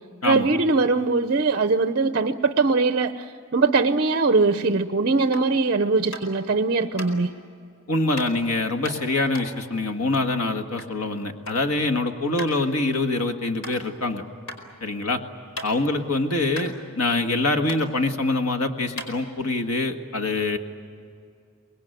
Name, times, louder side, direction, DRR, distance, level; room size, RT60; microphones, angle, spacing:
voice 1, 0.2-7.3, right 3 dB, 45° right, 9 dB, 0.7 m, -21 dB
sound 1, 5.3-5.6 6.1-6.4 7.0-7.1 8.2-8.3 8.9-11.0 11.2-11.7 11.9-12.0 12.4-12.6 13.0-13.1 13.6-13.8 14.5-14.6 15.0-16.0 16.3-16.4 16.5-17.4 17.7-17.8 18.5-18.6 18.9-19.7, left 1 dB, 70° left, 4.8 m, -37 dB
voice 2, 7.9-14.2 14.8-15.2 15.6-20.6, left 2 dB, 90° left, 7 dB, 1.8 m, -25 dB
26.0 x 20.5 x 9.2 m, 2.4 s
head